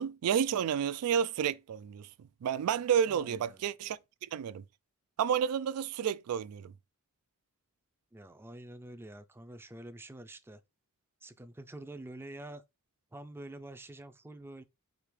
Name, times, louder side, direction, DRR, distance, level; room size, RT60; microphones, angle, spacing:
voice 1, 0.0-4.6 5.2-6.7, right 8 dB, 85° right, 0.3 m, -31 dB
voice 2, 3.1-3.6 8.1-10.6 11.2-12.6 13.1-14.6, right 1 dB, 10° right, 0.4 m, -47 dB
5.1 x 2.8 x 3.1 m
head